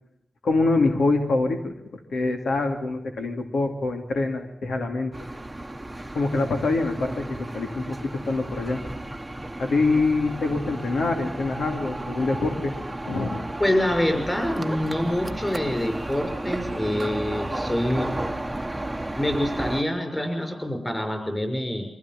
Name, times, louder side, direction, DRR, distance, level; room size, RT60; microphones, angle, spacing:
voice 1, 0.4-5.1 6.1-9.0 9.6-13.4, left 3 dB, 80° left, 4 dB, 2.7 m, -25 dB
sound 1, 5.1-19.8, right 1 dB, 10° right, 1.2 m, -33 dB
voice 2, 13.6-18.1 19.2-21.8, left 1 dB, 15° left, 5 dB, 6.0 m, -26 dB
24.0 x 16.0 x 7.6 m, 0.80 s
wide cardioid pair, 125°, 0 cm